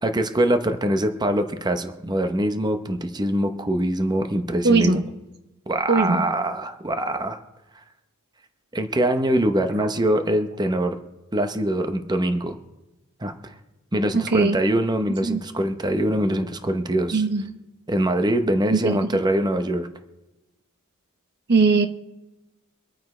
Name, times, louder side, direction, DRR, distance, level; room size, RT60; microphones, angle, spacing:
voice 1, 0.0-5.1 5.7-7.4 8.7-11.0 11.3-12.6 13.2-13.5 13.9-17.3 17.9-19.9, right 1 dB, 20° right, 7 dB, 0.8 m, -23 dB
voice 2, 4.6-5.0 5.9-6.2 14.1-14.5 15.3-15.4 17.1-17.4 18.7-19.0 21.5-21.9, right 4 dB, 50° right, 8 dB, 0.8 m, -19 dB
25.0 x 9.2 x 3.2 m, 1.0 s
head